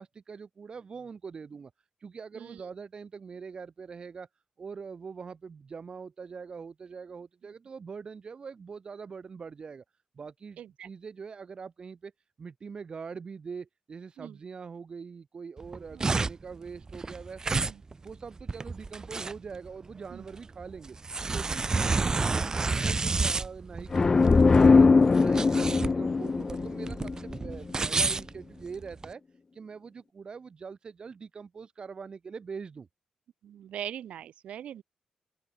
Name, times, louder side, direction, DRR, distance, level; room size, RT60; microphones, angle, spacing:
voice 1, 0.0-1.7 2.0-4.3 4.6-9.8 10.1-12.1 12.4-17.7 18.0-21.0 21.3-24.9 25.2-29.2 29.5-32.9, right 5 dB, 45° right, 2.1 m, -43 dB
voice 2, 10.6-10.9 14.2-14.4 15.9-16.1 17.5-17.8 20.1-20.2 21.7-21.9 25.7-25.8 33.4-34.8, right 10 dB, 80° right, 1.7 m, -41 dB
sound 1, 15.6-29.1, right 3 dB, 30° right, 1.0 m, -30 dB
sound 2, 23.9-27.6, left 4 dB, 35° left, 0.4 m, -21 dB
open air
cardioid pair, 75°, 2 cm